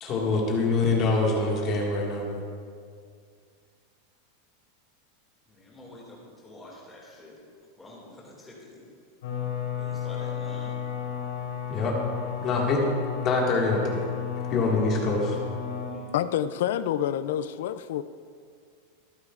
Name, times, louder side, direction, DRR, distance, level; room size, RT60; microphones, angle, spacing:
voice 1, 0.0-2.3 11.7-12.0 12.4-12.8 13.2-14.0 14.5-15.4, left 3 dB, 25° left, -2 dB, 1.9 m, -25 dB
voice 2, 5.5-7.4 7.8-8.9 9.8-10.8 15.9-16.1, left 1 dB, 5° left, -5 dB, 2.3 m, -47 dB
sound 1, 9.2-15.9, left 8 dB, 85° left, 3.6 m, -33 dB
voice 3, 16.1-18.0, left 10 dB, 65° left, 14 dB, 0.4 m, -27 dB
24.5 x 9.7 x 2.5 m, 2.2 s
supercardioid pair, 180°, 0 cm